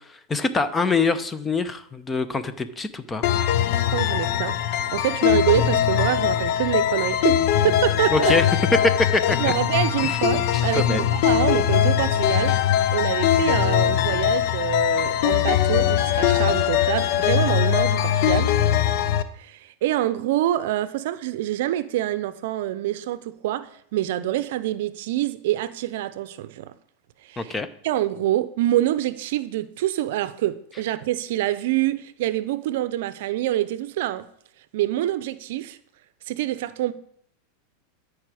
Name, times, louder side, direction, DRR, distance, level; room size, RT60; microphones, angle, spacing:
voice 1, 0.3-3.3 8.1-8.5 9.1-9.5 10.7-11.1 27.4-27.7, left 4 dB, 15° left, 0.8 m, -24 dB
sound 1, 3.2-19.2, left 10 dB, 55° left, 0.7 m, -21 dB
voice 2, 3.8-8.4 9.4-12.6 12.9-18.5 19.4-26.7 27.3-27.5 27.8-34.3 34.7-35.8 36.3-36.9, right 14 dB, 70° right, 0.6 m, -26 dB
13.5 x 4.9 x 4.9 m
hypercardioid pair, 115°, 0 cm